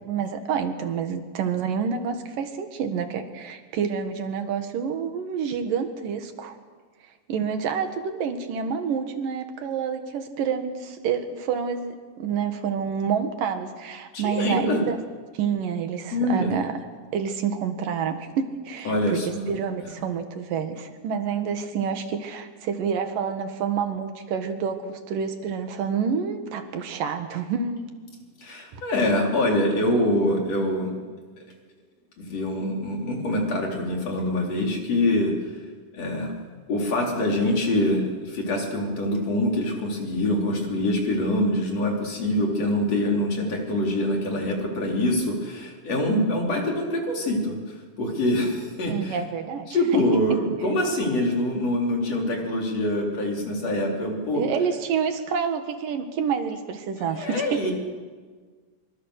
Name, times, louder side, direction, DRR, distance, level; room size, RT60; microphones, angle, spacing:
voice 1, 0.0-6.5 7.3-15.0 15.3-16.8 17.1-19.2 19.5-27.9 28.7-28.8 48.9-50.0 50.3-50.4 54.3-57.7, right 6 dB, 85° right, 7 dB, 3.4 m, -28 dB
voice 2, 14.1-14.8 16.1-16.5 18.8-19.5 19.8-19.9 28.4-30.9 32.2-35.3 35.9-36.3 36.7-47.6 48.0-49.2 49.7-54.4 57.1-57.7, left 1 dB, 50° left, 0 dB, 5.0 m, -25 dB
25.0 x 24.5 x 6.6 m, 1.5 s
omnidirectional pair, 3.8 m